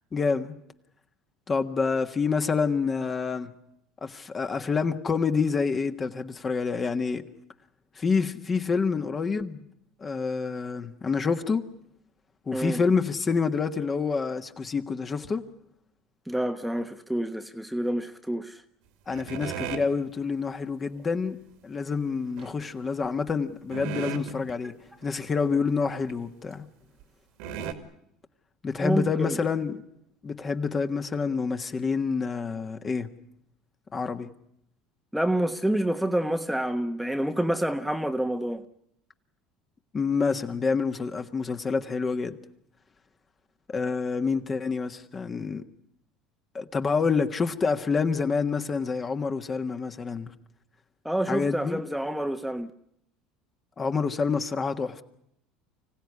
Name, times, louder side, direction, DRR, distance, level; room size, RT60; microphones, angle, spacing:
voice 1, 0.1-0.5 1.5-3.5 4.0-7.2 8.0-9.7 10.0-11.6 12.5-15.4 19.1-21.4 21.6-24.7 25.0-26.6 28.6-29.8 30.2-33.1 33.9-34.3 39.9-42.4 43.7-45.6 46.5-50.3 51.3-51.8 53.8-55.0, left 5 dB, 30° left, 1.6 m, -27 dB
voice 2, 16.3-18.6 28.8-29.4 35.1-38.6 51.0-52.7, right 1 dB, ahead, 1.1 m, -28 dB
sound 1, 19.1-19.9 22.4-22.7 23.3-23.4 23.7-24.5 25.0-25.1 25.4-25.5 26.1-26.2 27.0-27.1 27.4-27.7, right 7 dB, 75° right, 2.2 m, -35 dB
25.0 x 16.0 x 9.7 m
supercardioid pair, 90°, 0 cm